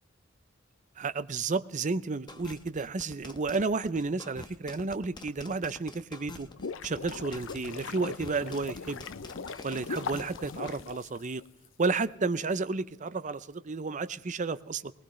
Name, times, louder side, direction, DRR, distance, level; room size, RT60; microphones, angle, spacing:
voice 1, 1.0-6.5 6.8-9.1 9.6-11.4 11.8-14.9, right 4 dB, 40° right, 14 dB, 0.6 m, -32 dB
sound 1, 2.3-10.8, left 2 dB, 20° left, 1.0 m, -46 dB
sound 2, 6.3-11.7, left 5 dB, 70° left, 0.6 m, -40 dB
21.0 x 19.5 x 3.2 m, 0.85 s
head